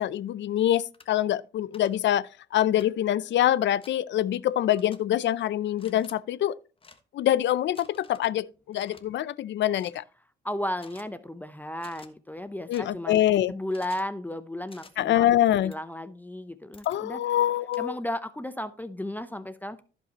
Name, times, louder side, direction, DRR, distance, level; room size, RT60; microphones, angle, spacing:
voice 1, 0.0-6.6 7.1-10.0 12.7-13.5 15.0-15.7 16.9-17.9, left 12 dB, 65° left, 0.5 m, -25 dB
sound 1, 0.9-1.1 1.7-1.9 2.8-2.9 3.8-4.0 4.7-5.0 5.7-6.1 6.8-7.0 7.7-8.2 8.7-9.0 9.8-10.0 10.8-11.0 11.8-12.1 12.7-12.8 13.7-14.1 14.7-14.9 15.7-15.8 16.7-17.0 17.7-17.8, left 4 dB, 25° left, 1.3 m, -52 dB
voice 2, 10.4-13.2 13.5-17.2 17.8-19.8, left 1 dB, 10° left, 0.6 m, -34 dB
14.5 x 5.4 x 2.9 m
cardioid pair, 90°, 20 cm